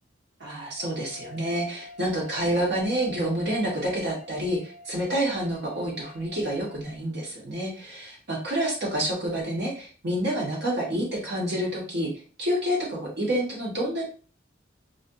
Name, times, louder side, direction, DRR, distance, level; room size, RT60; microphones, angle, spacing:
voice 1, 0.4-12.1 12.4-14.1, right 1 dB, 65° right, -3 dB, 1.0 m, -28 dB
sound 1, 0.8-6.8, left 2 dB, 40° right, 0.8 m, -46 dB
2.6 x 2.4 x 2.2 m, 0.38 s
head